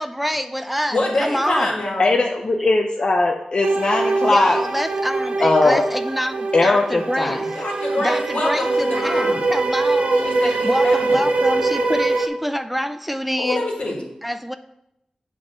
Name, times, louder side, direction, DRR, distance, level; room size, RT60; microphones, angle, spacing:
voice 1, 0.0-1.8 2.6-2.7 4.2-7.6 8.0-13.6 14.2-14.6, equal, 5° right, 10 dB, 0.3 m, -26 dB
voice 2, 0.9-2.1 7.5-9.4 10.2-11.2 13.4-14.0, left 2 dB, 75° left, -1 dB, 1.8 m, -25 dB
voice 3, 2.0-4.6 5.4-5.8 6.5-7.4, left 2 dB, 50° left, 2 dB, 0.6 m, -19 dB
sound 1, 3.6-12.3, right 3 dB, 85° right, 0.7 m, -22 dB
7.4 x 3.6 x 6.5 m, 0.85 s
wide cardioid pair, 85°, 2 cm